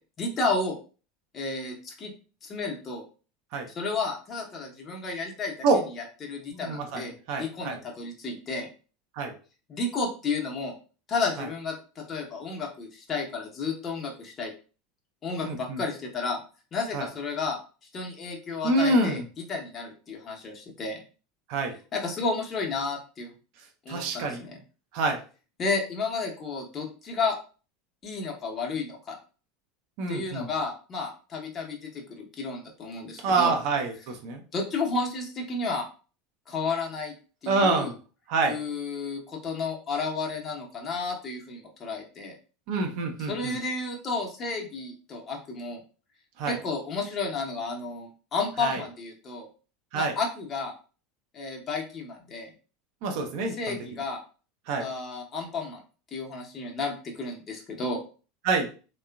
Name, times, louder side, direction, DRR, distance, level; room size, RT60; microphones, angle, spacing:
voice 1, 0.2-0.8 1.3-2.1 2.4-3.0 3.7-5.5 6.0-7.1 7.4-8.7 9.7-10.7 11.1-14.5 15.2-16.4 16.7-17.6 17.9-19.2 19.5-21.0 21.9-23.3 23.8-24.6 25.6-27.4 28.0-29.2 30.1-33.5 34.5-35.9 36.5-37.1 37.4-37.9 38.4-42.4 43.3-45.8 46.5-49.5 49.9-50.7 51.3-52.5 53.5-54.2 54.8-55.8 56.1-58.0, left 4 dB, 35° left, 1 dB, 0.9 m, -32 dB
voice 2, 6.5-7.8 9.2-9.3 15.4-15.8 16.9-17.1 18.6-19.2 21.5-21.7 23.9-24.4 24.9-25.2 30.0-30.5 33.2-34.4 37.5-37.9 38.3-38.6 42.7-43.6 46.4-46.6 48.6-48.8 49.9-50.1 53.0-53.8 54.7-54.9 58.4-58.7, right 3 dB, 55° right, 3 dB, 0.6 m, -26 dB
3.5 x 2.3 x 2.3 m, 0.36 s
figure-of-eight pair, 75°, 0 cm